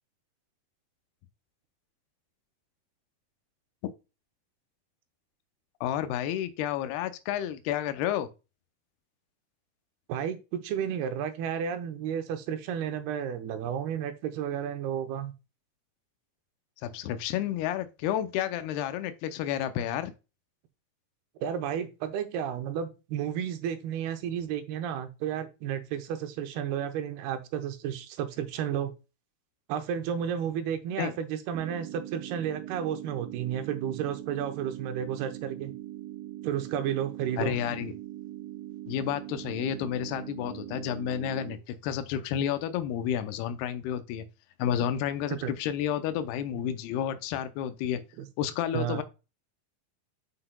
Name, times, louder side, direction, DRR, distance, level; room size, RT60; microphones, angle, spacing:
voice 1, 5.8-8.3 16.8-20.1 31.0-31.1 37.4-37.9 38.9-44.3 44.6-48.0 48.4-49.0, left 10 dB, 85° left, 2.6 m, -31 dB
voice 2, 10.1-15.3 21.4-28.9 29.7-35.7 36.4-37.6 45.4-45.6 48.2-48.3 48.7-49.0, right 9 dB, 90° right, 2.8 m, -32 dB
sound 1, 31.5-41.5, right 14 dB, 65° right, 2.6 m, -41 dB
7.8 x 5.8 x 2.2 m
omnidirectional pair, 4.5 m